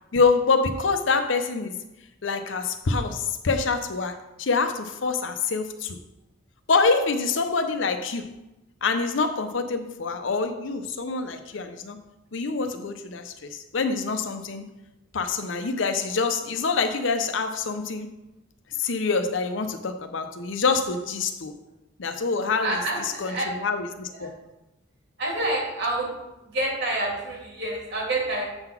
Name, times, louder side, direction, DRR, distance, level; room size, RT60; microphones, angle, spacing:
voice 1, 0.1-1.7 2.2-6.0 6.7-8.3 8.8-12.0 12.3-14.7 15.1-18.1 18.8-21.5 22.0-24.4, left 4 dB, 70° left, 8 dB, 0.7 m, -26 dB
voice 2, 22.6-23.5 24.2-24.3 25.2-26.1 26.4-28.4, right 2 dB, 60° right, -2 dB, 2.5 m, -28 dB
7.8 x 3.9 x 5.9 m, 0.97 s
head